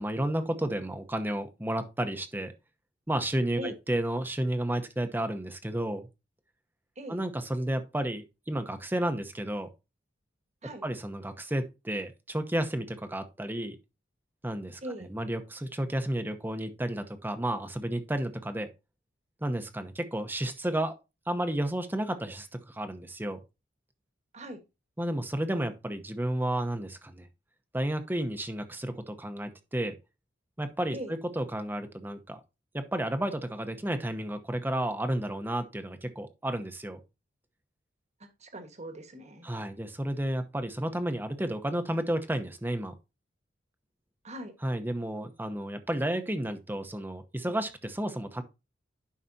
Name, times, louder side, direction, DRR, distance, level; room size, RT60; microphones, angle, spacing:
voice 1, 0.0-2.5 3.1-6.1 7.1-9.7 10.8-13.8 14.4-14.8 15.1-18.7 19.4-20.9 21.3-23.4 25.0-27.3 27.7-29.9 30.6-31.0 31.4-32.4 32.7-37.0 39.4-42.9 44.6-48.4, right 1 dB, 10° right, 0.9 m, -32 dB
voice 2, 14.8-15.1 24.3-24.6 30.9-31.1 38.2-39.5 44.2-44.6, right 1 dB, 35° right, 1.5 m, -40 dB
11.0 x 5.7 x 2.7 m
head